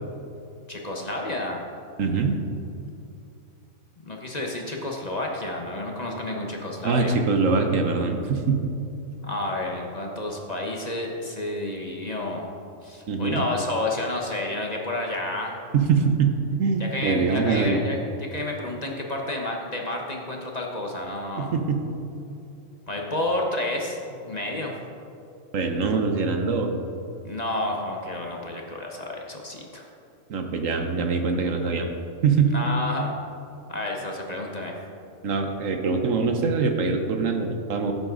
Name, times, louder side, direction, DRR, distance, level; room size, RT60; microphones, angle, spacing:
voice 1, 0.7-1.6 4.0-7.2 9.2-12.5 12.8-15.6 16.8-21.5 22.9-24.7 27.2-29.9 32.5-33.1 33.7-34.7, left 1 dB, 30° left, 0 dB, 1.2 m, -30 dB
voice 2, 2.0-2.4 6.8-8.6 13.1-13.5 15.7-17.8 21.4-21.8 25.5-26.7 30.3-31.9 32.2-32.5 35.2-37.9, right 4 dB, 75° right, 5 dB, 1.3 m, -23 dB
15.5 x 8.3 x 3.9 m, 2.6 s
omnidirectional pair, 1.4 m